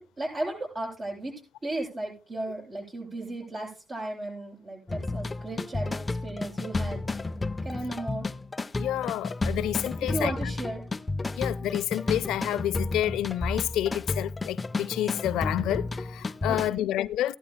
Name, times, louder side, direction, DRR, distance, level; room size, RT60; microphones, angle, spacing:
voice 1, 0.0-7.0 7.6-8.3 10.0-10.8 16.5-16.9, right 2 dB, 40° right, 7.6 m, -35 dB
sound 1, 4.9-16.7, left 3 dB, 25° left, 0.4 m, -32 dB
voice 2, 8.8-10.3 11.4-17.4, left 13 dB, 90° left, 0.4 m, -29 dB
17.5 x 12.0 x 2.2 m
cardioid pair, 90°, 0 cm